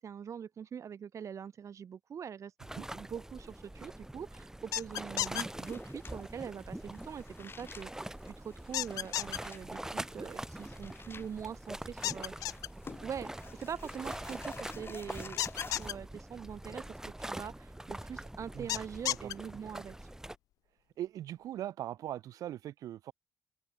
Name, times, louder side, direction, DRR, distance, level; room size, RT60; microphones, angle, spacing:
voice 1, 0.0-2.5 2.9-12.3 13.0-16.8 17.2-19.9, right 7 dB, 60° right, 5.0 m, -43 dB
sound 1, 2.6-20.4, right 1 dB, 10° right, 2.3 m, -44 dB
sound 2, 4.7-5.4 8.7-9.4 12.0-12.7 15.4-15.9 18.7-19.3, left 14 dB, 90° left, 0.4 m, -32 dB
sound 3, 5.6-15.9, left 5 dB, 40° left, 7.2 m, -52 dB
voice 2, 21.0-23.1, right 12 dB, 85° right, 4.9 m, -40 dB
open air
cardioid pair, 80°, 6 cm